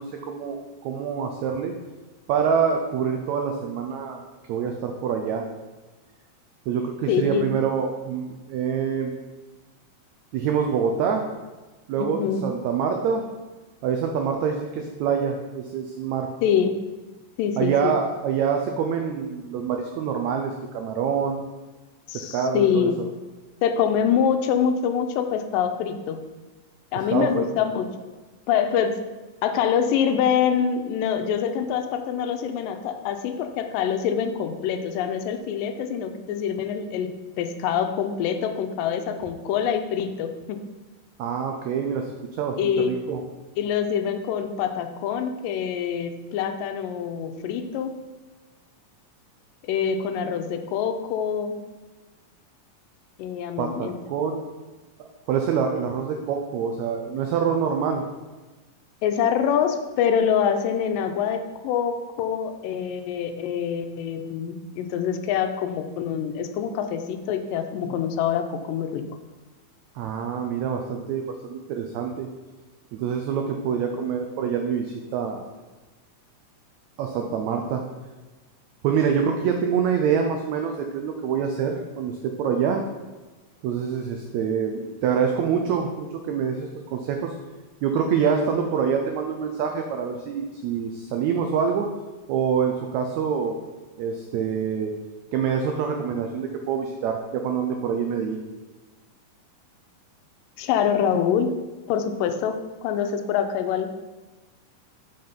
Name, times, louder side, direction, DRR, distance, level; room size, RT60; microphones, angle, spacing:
voice 1, 0.0-1.7 2.3-4.2 4.5-5.5 6.7-9.1 10.3-11.3 11.9-13.2 13.8-16.3 17.6-21.5 22.1-22.9 27.1-27.5 41.2-42.1 42.4-43.2 53.6-54.4 55.3-58.0 69.9-72.3 72.9-75.5 77.0-77.8 78.8-82.9 83.6-87.3 87.8-91.9 92.3-93.5 94.0-94.9 95.3-98.4, right 7 dB, 85° right, 3 dB, 1.6 m, -26 dB
voice 2, 7.1-7.5 12.0-12.4 16.4-16.8 17.4-17.9 22.1-23.0 23.6-26.2 26.9-28.1 28.5-29.0 29.4-40.6 42.6-42.9 43.6-48.0 49.6-51.6 53.2-54.0 59.0-69.0 100.6-101.5 101.9-102.5 102.8-104.0, left 8 dB, 85° left, 7 dB, 2.3 m, -25 dB
5.8 x 5.5 x 5.2 m, 1.2 s
omnidirectional pair, 3.9 m